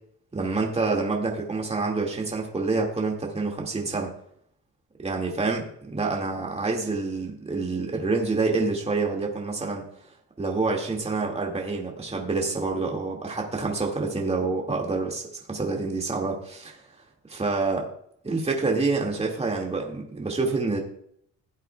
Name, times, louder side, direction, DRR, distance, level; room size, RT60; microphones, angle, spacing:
voice 1, 0.3-4.1 5.0-9.8 10.4-15.2 15.5-16.8 17.3-17.9 18.2-20.8, right 3 dB, 20° right, 0 dB, 2.1 m, -27 dB
16.0 x 8.0 x 2.3 m, 0.68 s
cardioid pair, 90°, 30 cm